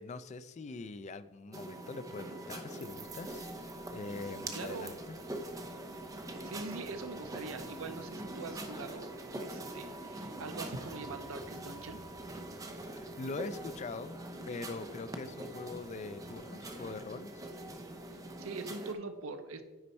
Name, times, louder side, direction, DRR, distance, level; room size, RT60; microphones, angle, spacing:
voice 1, 0.0-5.1 13.2-17.3, left 3 dB, 30° left, 13 dB, 0.3 m, -43 dB
sound 1, 1.5-18.9, right 1 dB, 15° right, 0.6 m, -43 dB
sound 2, 2.9-18.5, equal, 45° right, 2.5 m, -63 dB
voice 2, 4.5-4.9 6.3-12.0 18.1-19.6, right 3 dB, 70° right, 9 dB, 0.6 m, -43 dB
sound 3, 6.5-16.5, right 2 dB, 5° left, 1.0 m, -63 dB
9.6 x 4.4 x 4.2 m, 1.2 s
head